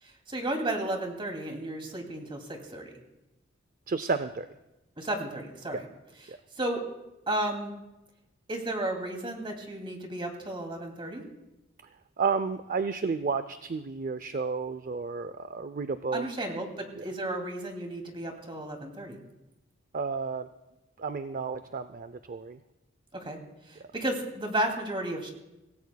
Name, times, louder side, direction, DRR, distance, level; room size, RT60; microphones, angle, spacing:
voice 1, 0.0-2.9 5.0-5.9 6.3-6.8 7.3-7.7 8.5-11.2 16.1-19.2 23.1-23.4 23.7-25.3, right 1 dB, 25° right, 3 dB, 2.6 m, -33 dB
voice 2, 3.9-4.5 5.7-5.8 6.3-6.4 12.2-16.3 17.0-17.1 19.9-20.5 21.0-22.6, right 5 dB, 45° right, 11 dB, 0.5 m, -31 dB
26.0 x 17.5 x 2.3 m, 0.96 s
head